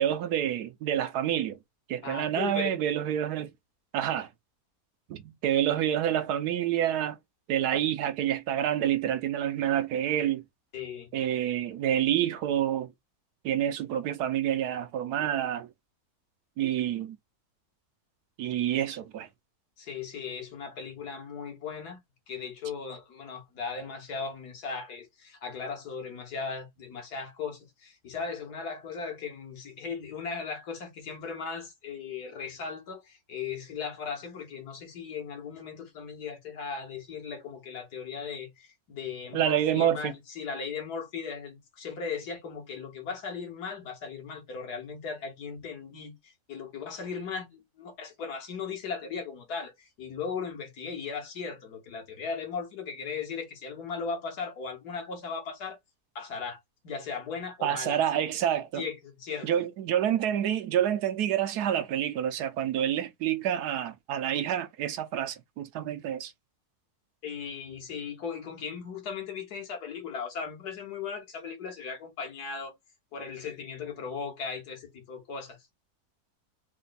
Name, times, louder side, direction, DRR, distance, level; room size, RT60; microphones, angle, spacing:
voice 1, 0.0-1.6 1.9-3.5 3.9-4.3 5.1-7.2 7.5-10.4 11.1-12.9 13.4-15.7 16.6-17.2 18.4-19.3 39.3-40.1 57.6-58.8 59.4-66.3, right 10 dB, 85° right, 1.2 m, -28 dB
voice 2, 2.0-2.8 10.7-11.1 19.8-22.0 22.3-55.8 56.2-56.6 56.8-58.0 58.8-59.5 67.2-72.7 73.1-75.6, left 5 dB, 80° left, 1.9 m, -37 dB
4.1 x 2.2 x 4.0 m
omnidirectional pair, 1.7 m